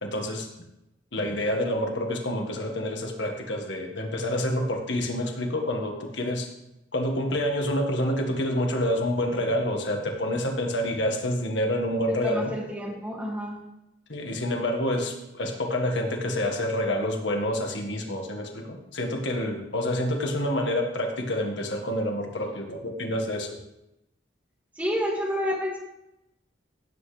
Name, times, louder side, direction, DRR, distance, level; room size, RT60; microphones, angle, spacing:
voice 1, 0.0-0.5 1.1-6.5 6.9-12.5 14.1-23.6, left 1 dB, 80° left, 2 dB, 1.6 m, -28 dB
voice 2, 12.1-13.6 24.8-25.8, equal, 10° right, -2 dB, 2.1 m, -29 dB
16.0 x 8.1 x 3.3 m, 0.87 s
head